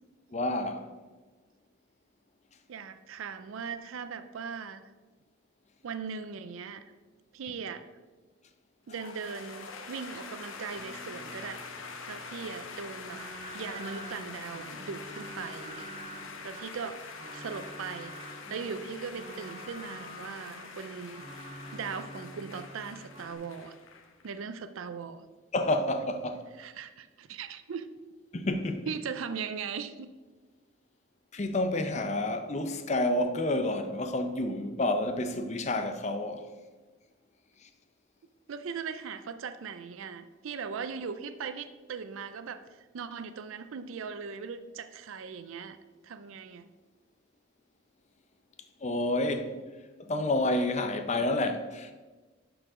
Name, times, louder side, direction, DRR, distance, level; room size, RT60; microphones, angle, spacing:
voice 1, 0.3-0.9 25.5-26.4 28.3-28.9 31.3-36.5 37.6-37.7 48.8-49.6 50.0-51.9, left 1 dB, 35° left, 0.5 m, -29 dB
voice 2, 2.7-4.8 5.8-6.9 7.3-7.8 8.9-13.2 13.5-15.9 16.4-18.1 18.5-21.2 21.5-23.8 24.2-25.3 26.6-27.9 28.9-30.1 38.5-45.8 46.0-46.7, right 6 dB, 75° right, 0.4 m, -39 dB
sound 1, 8.9-24.4, left 5 dB, 75° left, 0.8 m, -45 dB
sound 2, 10.8-23.3, right 1 dB, 30° right, 0.7 m, -47 dB
11.0 x 4.8 x 3.7 m
head